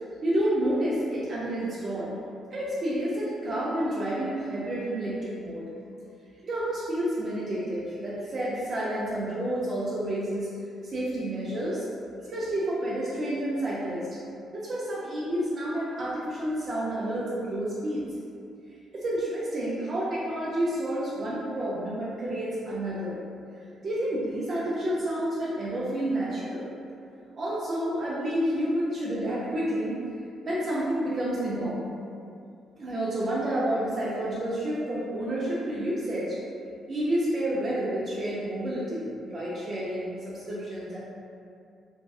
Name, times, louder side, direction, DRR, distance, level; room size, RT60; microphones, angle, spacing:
voice 1, 0.2-2.2 2.5-5.6 6.4-10.6 10.8-11.9 12.3-14.2 14.5-18.0 18.9-23.2 23.8-26.6 27.4-30.0 30.4-31.8 32.8-36.4 36.9-41.0, right 1 dB, 45° right, -7 dB, 0.4 m, -29 dB
2.5 x 2.2 x 2.3 m, 2.5 s
cardioid pair, 90°, 0 cm